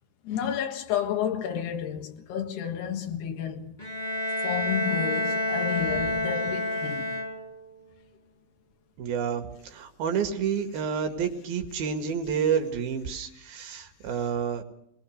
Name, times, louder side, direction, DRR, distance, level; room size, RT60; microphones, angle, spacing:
voice 1, 0.3-3.8 4.4-7.1, left 9 dB, 85° left, 3.7 m, -31 dB
Bowed string instrument, 3.8-7.7, left 1 dB, 15° left, 2.8 m, -29 dB
voice 2, 9.0-14.6, right 7 dB, 70° right, 3.9 m, -29 dB
22.0 x 22.0 x 6.6 m
omnidirectional pair, 4.5 m